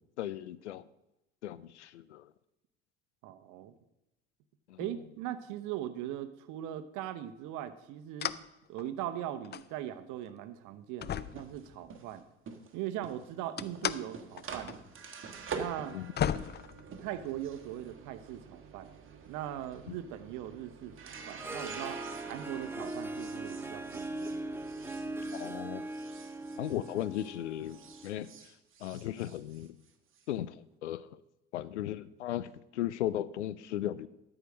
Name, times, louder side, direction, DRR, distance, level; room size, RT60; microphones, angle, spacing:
voice 1, 0.2-0.8 1.4-2.3 4.7-4.8 15.9-16.1 19.9-20.0 25.3-25.9 26.6-28.5 28.8-29.8 30.3-31.2 31.5-34.1, left 12 dB, 85° left, 18 dB, 0.5 m, -36 dB
voice 2, 3.2-3.7 4.8-8.3 8.7-12.2 12.7-14.8 15.5-16.0 17.0-18.9 19.3-24.4, right 12 dB, 60° right, 12 dB, 1.0 m, -40 dB
sound 1, 8.2-8.5 8.8-9.7 10.3-10.4 11.0-12.1 13.6-14.0 14.4-14.7 15.0-15.1 15.8-15.9 16.2-17.3, left 9 dB, 30° left, 0.5 m, -35 dB
sound 2, 11.2-27.4 27.6-30.2, right 5 dB, 35° right, 1.6 m, -47 dB
Harp, 21.2-28.3, right 2 dB, 5° right, 0.8 m, -40 dB
12.5 x 5.0 x 6.2 m, 0.89 s
hypercardioid pair, 65°, 34 cm